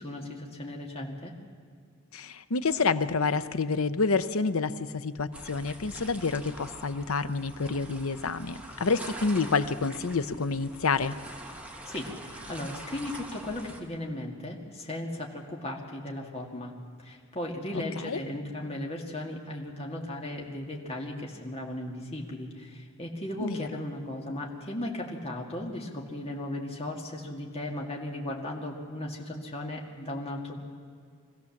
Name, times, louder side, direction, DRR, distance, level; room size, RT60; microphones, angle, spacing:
voice 1, 0.0-1.3 11.9-16.7 17.0-30.6, left 1 dB, 30° left, -1 dB, 2.1 m, -36 dB
voice 2, 2.1-11.2 17.7-18.2 23.4-23.7, left 4 dB, 85° left, 12 dB, 0.8 m, -28 dB
sound 1, 5.3-13.8, right 1 dB, 5° right, 1.5 m, -44 dB
23.0 x 15.5 x 7.3 m, 2.2 s
head